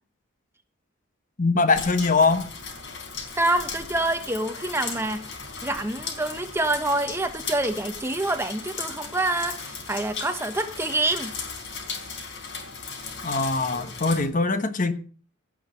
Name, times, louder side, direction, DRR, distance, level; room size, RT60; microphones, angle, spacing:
voice 1, 1.4-2.5 13.2-14.9, left 3 dB, 35° left, 1.2 m, -22 dB
sound 1, 1.7-14.3, left 5 dB, 60° left, 4.1 m, -37 dB
voice 2, 3.3-5.3 5.6-11.3, right 2 dB, 10° right, 1.1 m, -26 dB
16.5 x 6.3 x 7.6 m
head